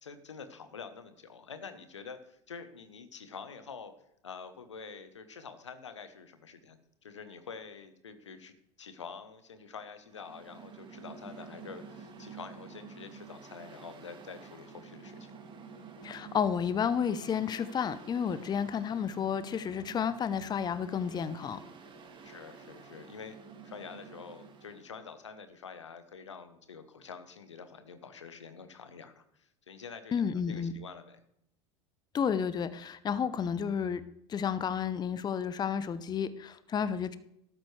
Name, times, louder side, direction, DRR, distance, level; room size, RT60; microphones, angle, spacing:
voice 1, 0.0-3.9 4.2-15.3 22.2-23.3 23.6-31.2, left 5 dB, 90° left, 10 dB, 0.9 m, -47 dB
Mechanical fan, 10.0-24.9, right 5 dB, 35° right, 1.8 m, -50 dB
voice 2, 16.0-21.6 30.1-30.7 32.1-34.0 34.3-37.2, left 7 dB, 30° left, 14 dB, 0.7 m, -31 dB
13.0 x 12.5 x 3.3 m, 0.77 s
hypercardioid pair, 80°, 15 cm